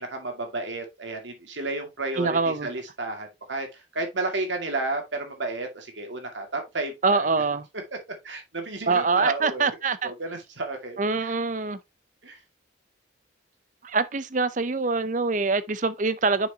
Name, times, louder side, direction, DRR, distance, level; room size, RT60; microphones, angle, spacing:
voice 1, 0.0-7.3 8.2-11.3 12.2-12.4, right 2 dB, 70° right, 2.2 m, -32 dB
voice 2, 2.2-2.7 7.0-7.6 8.9-10.1 11.0-11.8 13.8-16.5, right 4 dB, 40° right, 0.6 m, -24 dB
6.9 x 6.3 x 2.8 m
head